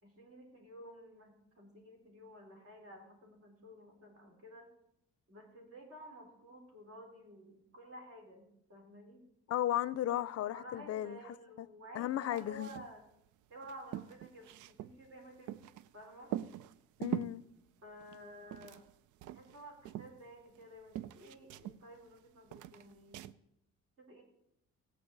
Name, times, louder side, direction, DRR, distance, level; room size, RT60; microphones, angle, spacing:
voice 1, 0.0-4.7 5.3-9.2 10.5-13.0 13.5-15.6 15.9-16.4 17.8-18.9 19.2-23.2 24.0-24.2, equal, 50° right, 3.8 m, -53 dB
voice 2, 9.5-11.2 11.6-11.7 12.0-12.7 17.0-17.4, left 12 dB, 55° left, 0.5 m, -35 dB
sound 1, 12.3-13.0 13.3-13.4 13.6-15.9 16.3-17.4 18.0-19.0 19.2-20.7 20.9-22.2 22.5-23.3, right 12 dB, 80° right, 0.5 m, -43 dB
18.0 x 8.5 x 3.9 m
cardioid pair, 90°, 30 cm